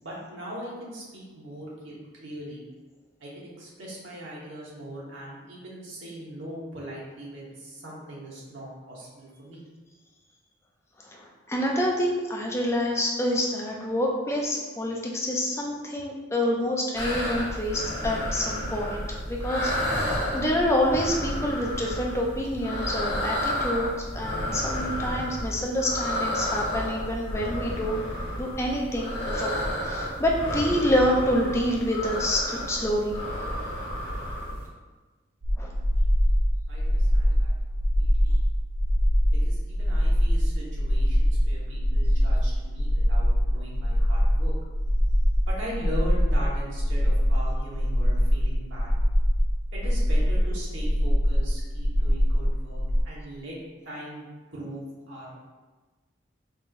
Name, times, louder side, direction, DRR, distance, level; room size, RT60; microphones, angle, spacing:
voice 1, 0.0-2.6 3.2-9.6 36.7-38.3 39.3-44.5 45.5-48.9 49.7-53.6 53.8-54.2 54.5-55.4, equal, 85° right, -6 dB, 1.3 m, -40 dB
voice 2, 11.0-19.7 20.0-28.0 28.3-33.2 35.6-35.7, left 1 dB, 15° left, -1 dB, 0.5 m, -27 dB
sound 1, 16.9-34.7, equal, 60° left, 1.3 m, -31 dB
sound 2, 35.4-53.0, equal, 60° right, 0.7 m, -23 dB
5.3 x 3.0 x 2.6 m, 1.3 s
head